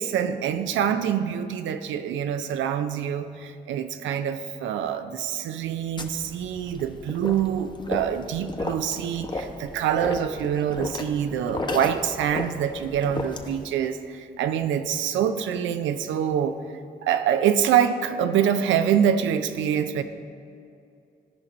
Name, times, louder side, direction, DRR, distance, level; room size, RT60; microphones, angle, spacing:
voice 1, 0.0-16.6 17.0-20.0, right 9 dB, 90° right, 10 dB, 0.5 m, -25 dB
sound 1, 6.0-13.7, left 2 dB, 25° left, 0.9 m, -34 dB
13.0 x 5.3 x 4.2 m, 2.5 s
supercardioid pair, 60°, 19 cm